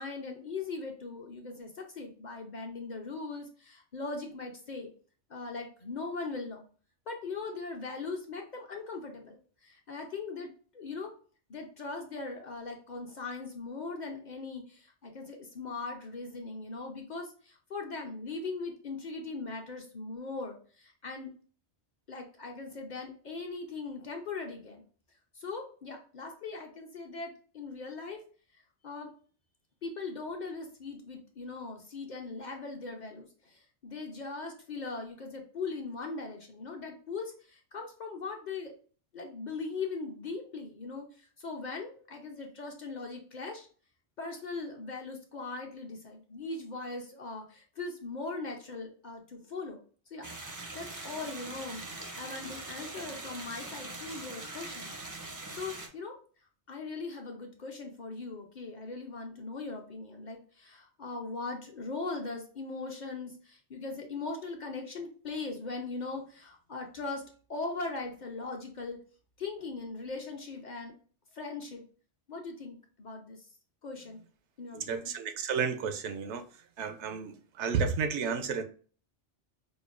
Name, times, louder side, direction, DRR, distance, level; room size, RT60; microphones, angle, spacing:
voice 1, 0.0-4.9 5.3-6.6 7.1-11.1 11.5-21.3 22.1-24.8 25.3-28.2 28.5-29.1 29.8-38.7 39.1-43.7 44.2-49.8 50.1-50.3 50.7-54.9 55.5-56.1 56.7-67.2 67.5-69.0 69.4-70.9 71.3-71.8 72.3-73.5 73.8-74.2 74.6-75.1, left 3 dB, 50° left, 0.6 m, -40 dB
sound 1, 50.2-55.9, right 2 dB, 30° right, 0.4 m, -42 dB
voice 2, 74.7-76.4 76.8-78.6, right 6 dB, 85° right, 0.9 m, -32 dB
5.1 x 2.2 x 2.4 m
omnidirectional pair, 1.2 m